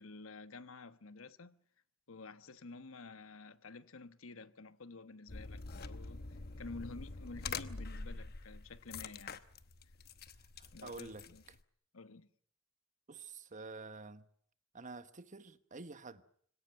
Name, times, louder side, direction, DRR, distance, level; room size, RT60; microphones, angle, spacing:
voice 1, 0.0-1.6 2.1-6.2 6.6-9.4 10.7-11.4 11.9-12.3, left 3 dB, 80° left, 1.1 m, -50 dB
sound 1, 5.3-11.6, left 4 dB, 50° left, 1.0 m, -46 dB
voice 2, 10.6-11.2 13.1-14.3 14.7-16.2, right 3 dB, 40° right, 1.2 m, -49 dB
25.0 x 17.5 x 9.2 m
head